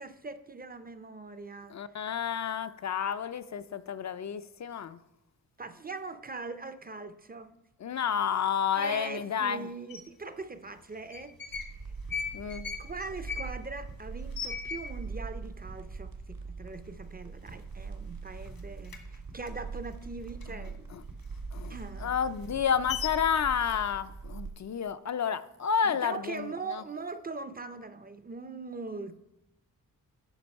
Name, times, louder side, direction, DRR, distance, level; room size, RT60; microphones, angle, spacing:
voice 1, 0.0-1.8 5.6-7.6 8.7-11.6 12.8-20.9 21.7-22.1 25.8-29.2, right 3 dB, 25° right, 0.4 m, -41 dB
voice 2, 1.7-5.0 7.8-9.7 12.3-12.7 20.5-21.0 21.5-21.7 22.0-26.8, left 7 dB, 50° left, 0.4 m, -30 dB
sound 1, 9.9-10.0 10.9-11.7 12.0-15.3 15.6-15.7 15.9-16.4 16.9-17.0 17.3-18.1 18.4-20.7 21.1-23.4, left 6 dB, 75° left, 1.4 m, -39 dB
sound 2, 11.5-24.5, right 4 dB, 70° right, 1.9 m, -42 dB
10.0 x 5.9 x 5.3 m
wide cardioid pair, 155°, 36 cm